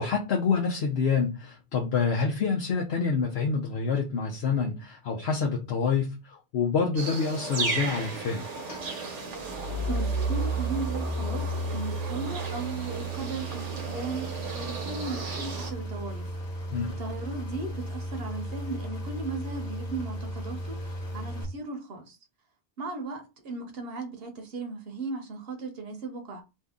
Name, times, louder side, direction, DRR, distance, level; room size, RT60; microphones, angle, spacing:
voice 1, 0.0-8.4 16.7-16.9, left 5 dB, 70° left, 0.9 m, -27 dB
sound 1, 7.0-15.7, right 4 dB, 90° right, 1.1 m, -36 dB
sound 2, 7.4-21.4, right 2 dB, 40° left, 1.1 m, -34 dB
voice 2, 9.9-16.3 17.0-22.2 22.8-26.4, right 3 dB, 60° right, 0.9 m, -37 dB
2.7 x 2.7 x 3.5 m
omnidirectional pair, 1.2 m